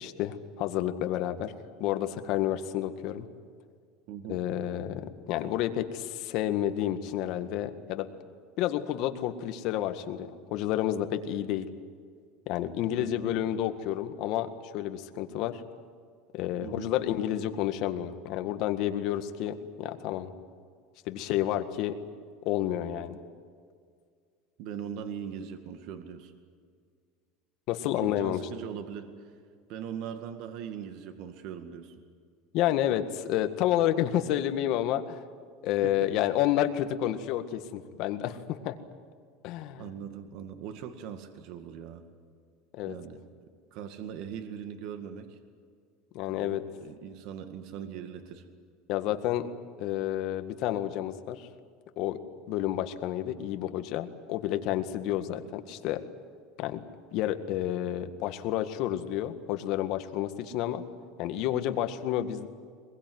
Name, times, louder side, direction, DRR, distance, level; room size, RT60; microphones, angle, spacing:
voice 1, 0.0-1.5 1.8-3.3 4.3-8.1 8.6-11.7 12.5-15.6 16.3-20.3 21.1-21.9 22.5-23.2 27.7-28.4 32.5-35.2 35.6-38.8 39.4-39.9 42.7-43.0 46.1-46.6 48.9-49.5 49.8-51.5 52.0-52.2 52.5-56.0 56.6-56.8 57.1-60.8 61.2-62.5, left 12 dB, 55° left, 8 dB, 1.8 m, -30 dB
voice 2, 4.1-4.4 12.9-13.4 16.6-17.0 24.6-26.3 27.8-29.3 29.7-32.0 35.8-36.1 39.8-42.1 42.9-43.2 43.7-45.4 46.3-48.5, right 8 dB, 60° right, 7 dB, 2.0 m, -40 dB
23.0 x 22.0 x 9.5 m, 2.1 s
supercardioid pair, 145°, 0 cm